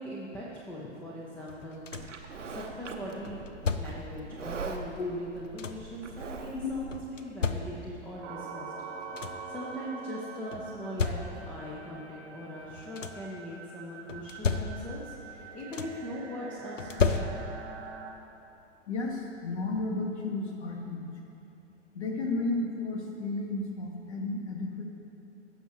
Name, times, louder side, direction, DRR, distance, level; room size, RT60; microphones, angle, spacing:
voice 1, 0.0-1.9 2.1-3.4 3.8-8.7 9.1-17.4, equal, 5° left, -6 dB, 0.4 m, -41 dB
sound 1, 1.5-2.3 3.2-4.2 5.1-6.0 6.9-8.1 8.7-8.8 9.0-9.6 10.5-11.7 12.6-13.4 14.1-15.1 15.4-16.1 16.8-17.8 19.1-19.2 19.7-19.9, left 4 dB, 90° left, 0.6 m, -34 dB
Livestock farm animals working animals, 1.9-7.0, right 4 dB, 80° right, 0.8 m, -42 dB
sound 2, 8.2-18.1, right 5 dB, 30° right, 0.8 m, -44 dB
voice 2, 18.9-21.1 21.9-24.8, left 2 dB, 65° left, 1 dB, 1.6 m, -33 dB
15.5 x 6.1 x 2.9 m, 2.9 s
figure-of-eight pair, 110°, 37 cm